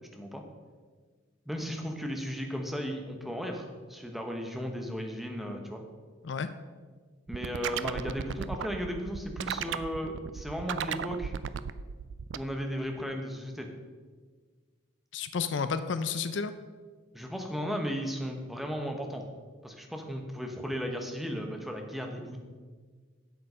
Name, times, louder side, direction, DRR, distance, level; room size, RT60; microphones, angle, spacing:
voice 1, 0.1-0.4 1.5-5.8 7.3-11.3 12.3-13.7 17.1-19.2 19.6-22.4, equal, ahead, 3 dB, 0.9 m, -35 dB
sound 1, 7.3-12.4, right 7 dB, 65° right, 0.4 m, -35 dB
voice 2, 15.1-16.5, left 5 dB, 65° left, 11 dB, 0.4 m, -31 dB
8.0 x 7.5 x 5.5 m, 1.5 s
head